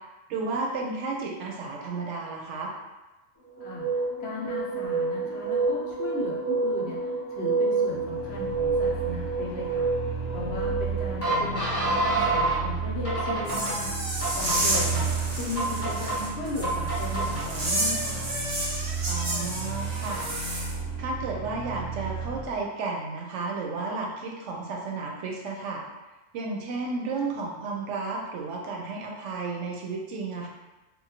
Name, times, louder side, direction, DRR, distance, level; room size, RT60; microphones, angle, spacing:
voice 1, 0.3-2.7 14.7-14.9 19.1-20.3 21.0-25.8 26.3-30.5, right 3 dB, 75° right, -1 dB, 0.9 m, -32 dB
sound 1, 3.6-12.6 13.0-13.7 14.2-15.0 15.6-16.2 16.6-17.4, right 3 dB, 15° left, 0.6 m, -28 dB
voice 2, 4.2-9.9 10.3-15.1 15.4-18.3, left 2 dB, 65° left, -4 dB, 0.8 m, -36 dB
sound 2, 7.9-22.6, right 4 dB, 90° left, 1.0 m, -34 dB
sound 3, 13.4-20.7, right 1 dB, 40° right, 0.8 m, -31 dB
2.9 x 2.2 x 2.7 m, 1.1 s
omnidirectional pair, 1.3 m